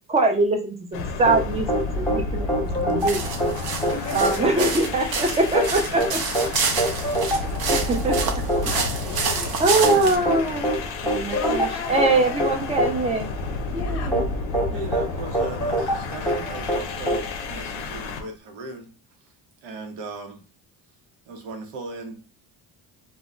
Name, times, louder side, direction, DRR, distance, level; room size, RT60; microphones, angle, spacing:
voice 1, 0.1-3.2 4.1-6.5 7.7-8.3 8.6-8.8 9.6-10.6 11.0-13.3 13.7-14.2, right 2 dB, 15° right, 4 dB, 0.4 m, -23 dB
sound 1, 0.9-18.3, left 3 dB, 85° left, 0.6 m, -31 dB
sound 2, 1.3-18.1, right 1 dB, 5° left, 0.9 m, -27 dB
sound 3, 3.0-10.2, right 5 dB, 55° right, 0.7 m, -29 dB
voice 2, 3.9-4.6 8.6-11.0 11.3-12.6 13.7-14.1, left 6 dB, 35° left, 6 dB, 0.6 m, -36 dB
voice 3, 14.7-18.9 19.2-19.3 19.6-20.4 21.3-22.2, right 3 dB, 85° right, 4 dB, 0.8 m, -37 dB
2.2 x 2.1 x 3.6 m, 0.35 s
cardioid pair, 110°, 43 cm